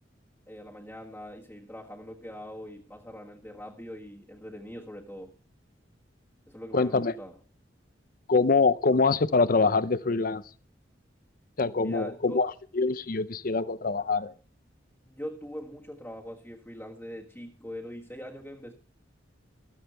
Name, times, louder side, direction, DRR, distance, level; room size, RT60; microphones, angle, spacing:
voice 1, 0.5-5.3 6.5-7.4 11.8-12.4 15.0-18.7, equal, 10° left, 1.7 m, -42 dB
voice 2, 6.7-7.1 8.3-10.4 11.6-14.3, left 4 dB, 50° left, 0.7 m, -24 dB
14.5 x 13.5 x 3.4 m
head